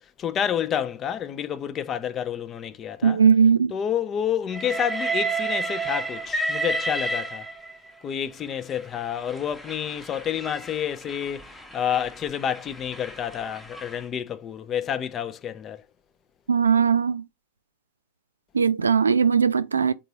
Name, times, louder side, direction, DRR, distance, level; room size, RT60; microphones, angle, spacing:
voice 1, 0.2-3.2 3.7-7.5 8.0-15.8, left 9 dB, 25° left, 0.4 m, -29 dB
voice 2, 3.0-3.7 16.5-17.2 18.5-19.9, right 6 dB, 75° right, 0.3 m, -19 dB
Train, 4.5-7.9 8.8-14.0, right 3 dB, 5° left, 0.8 m, -31 dB
3.8 x 3.7 x 2.8 m
figure-of-eight pair, 90°, 0 cm